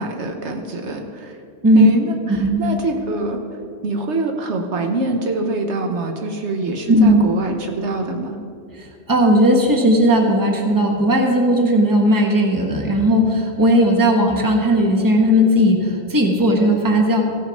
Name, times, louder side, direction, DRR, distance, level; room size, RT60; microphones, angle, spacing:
voice 1, 0.0-1.4 1.7-3.4 3.8-8.4, right 2 dB, 65° right, 3 dB, 1.2 m, -24 dB
voice 2, 2.3-2.7 6.9-7.2 8.7-17.2, equal, 15° right, 2 dB, 1.1 m, -16 dB
16.0 x 6.3 x 5.2 m, 2.5 s
omnidirectional pair, 1.3 m